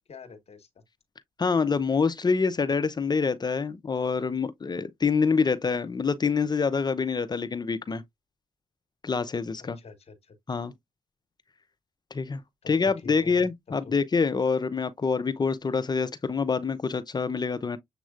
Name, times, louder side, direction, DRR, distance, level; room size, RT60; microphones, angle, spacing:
voice 1, 0.1-0.8 9.6-10.4 12.6-13.5 13.8-13.9, left 4 dB, 55° left, 1.4 m, -46 dB
voice 2, 1.4-8.0 9.0-9.8 10.5-10.7 12.1-12.4 12.7-17.8, left 5 dB, 35° left, 0.7 m, -26 dB
7.2 x 3.0 x 2.4 m
supercardioid pair, 55°, 13 cm